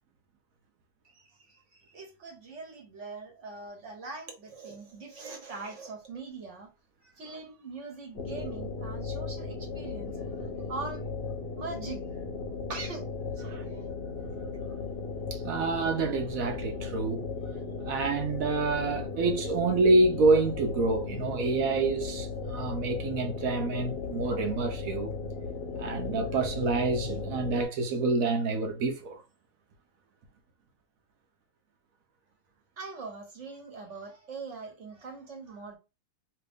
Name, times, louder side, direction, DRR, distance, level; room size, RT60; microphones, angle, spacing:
voice 1, 1.1-6.7 7.1-11.0 11.6-12.0 12.7-13.1 13.4-13.8 32.8-35.8, right 4 dB, 45° right, 1.0 m, -42 dB
sound 1, 8.1-27.6, left 4 dB, 75° left, 0.5 m, -36 dB
voice 2, 15.3-17.3 17.8-25.1 25.8-29.2, right 3 dB, 70° right, 0.8 m, -27 dB
2.9 x 2.9 x 3.4 m
omnidirectional pair, 2.2 m